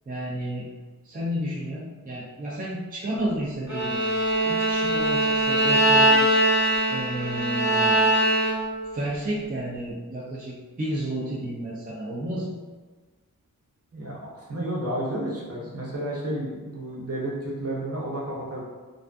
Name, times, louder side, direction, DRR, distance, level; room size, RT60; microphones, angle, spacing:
voice 1, 0.1-0.7 1.0-6.3 6.9-8.0 8.9-12.6, right 1 dB, 25° right, -6 dB, 0.4 m, -31 dB
Bowed string instrument, 3.7-8.8, right 1 dB, 5° right, 1.0 m, -22 dB
voice 2, 13.9-18.6, right 1 dB, 45° right, -4 dB, 0.8 m, -31 dB
2.5 x 2.4 x 2.2 m, 1.3 s
wide cardioid pair, 65°, 34 cm